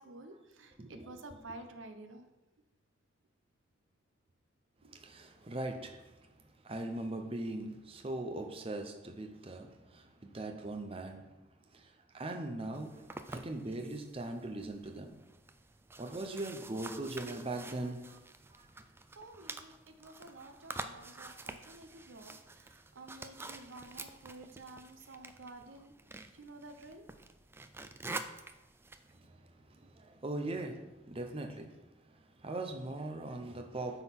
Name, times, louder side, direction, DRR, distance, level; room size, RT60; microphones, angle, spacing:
voice 1, 0.0-2.3 4.8-5.0 19.2-25.9 26.3-27.1 29.8-29.9, right 2 dB, 75° right, 7 dB, 0.8 m, -51 dB
voice 2, 0.8-1.2 4.9-11.3 11.7-15.2 16.0-18.2 18.5-18.7 29.1-34.0, right 2 dB, 30° right, 3 dB, 0.7 m, -41 dB
sound 1, 12.7-29.2, right 3 dB, 10° right, 0.3 m, -48 dB
9.6 x 3.9 x 6.0 m, 1.0 s
head